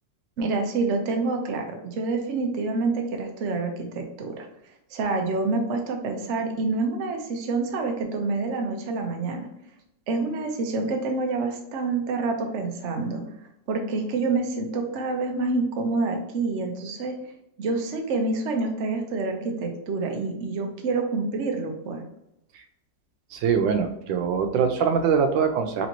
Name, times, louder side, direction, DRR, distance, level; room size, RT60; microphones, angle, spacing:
voice 1, 0.4-4.5 4.9-9.5 10.1-13.2 13.7-17.2 17.6-22.0, right 3 dB, 60° right, 3 dB, 0.8 m, -27 dB
voice 2, 23.3-25.9, right 6 dB, 90° right, 6 dB, 1.3 m, -23 dB
4.0 x 3.4 x 2.9 m, 0.80 s
omnidirectional pair, 2.0 m